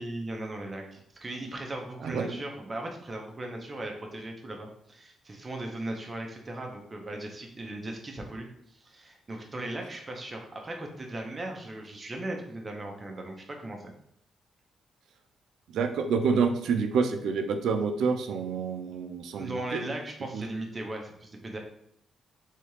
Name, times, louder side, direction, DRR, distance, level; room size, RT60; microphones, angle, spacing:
voice 1, 0.0-13.9 19.4-21.6, right 1 dB, 20° right, 1 dB, 0.6 m, -38 dB
voice 2, 2.0-2.3 15.7-19.8 20.3-20.4, right 5 dB, 80° right, 6 dB, 0.4 m, -28 dB
3.4 x 2.7 x 3.0 m, 0.71 s
cardioid pair, 140°, 0 cm